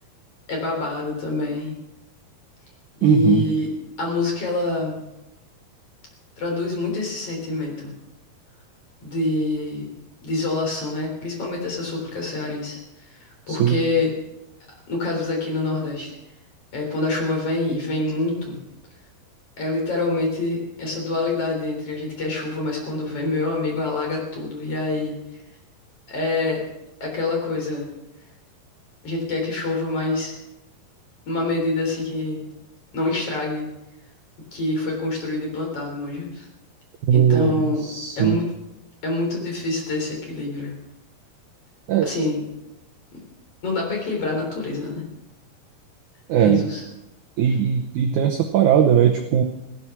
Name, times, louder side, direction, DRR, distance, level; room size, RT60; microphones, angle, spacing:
voice 1, 0.5-1.8 3.0-3.7 4.0-5.0 6.4-7.9 9.0-9.9 10.2-12.8 13.1-14.1 14.9-16.1 16.7-18.6 19.6-25.4 26.1-26.6 27.0-27.9 29.0-30.4 31.3-32.4 32.9-33.7 34.5-36.5 37.1-37.8 38.2-38.5 39.0-40.7 42.0-42.4 43.1-43.2 43.6-45.0 46.4-46.8 47.5-47.6, left 2 dB, 40° left, 0 dB, 4.3 m, -26 dB
voice 2, 3.0-3.4 13.5-13.8 37.0-37.5 37.9-38.4 41.9-42.1 46.3-46.6 47.4-49.4, right 9 dB, 75° right, 4 dB, 1.8 m, -18 dB
16.0 x 12.5 x 6.0 m, 0.94 s
omnidirectional pair, 4.6 m